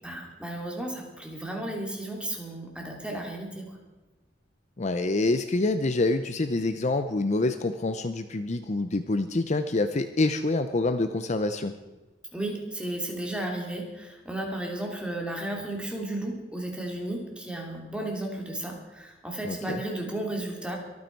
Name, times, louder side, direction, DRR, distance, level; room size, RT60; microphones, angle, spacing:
voice 1, 0.0-3.8 12.3-20.8, right 1 dB, 5° right, 0 dB, 2.9 m, -34 dB
voice 2, 4.8-11.8 19.4-19.8, left 2 dB, 40° left, 9 dB, 0.6 m, -26 dB
23.5 x 9.5 x 4.6 m, 1.2 s
head